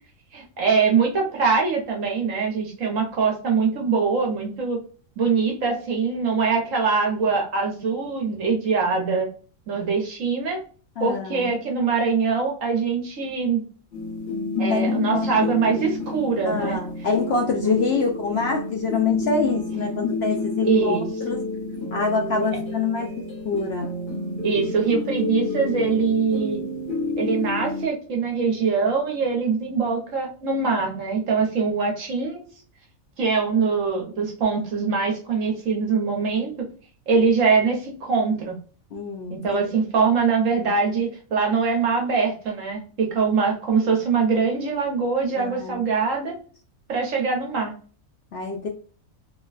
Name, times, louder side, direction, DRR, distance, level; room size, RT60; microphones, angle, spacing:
voice 1, 0.3-4.8 5.2-9.3 9.7-10.6 11.0-13.6 14.6-16.8 17.6-17.7 20.6-21.0 24.4-26.6 27.2-32.4 33.2-36.5 37.1-38.6 39.3-46.4 46.9-47.7, right 5 dB, 70° right, 1 dB, 1.3 m, -23 dB
voice 2, 11.0-11.5 14.7-15.8 16.5-21.4 21.9-23.9 38.9-39.6 45.4-45.8 48.3-48.7, left 4 dB, 65° left, 2 dB, 0.7 m, -26 dB
sound 1, 13.9-27.9, left 3 dB, 45° left, 1.3 m, -29 dB
3.1 x 2.2 x 2.3 m, 0.41 s
omnidirectional pair, 1.4 m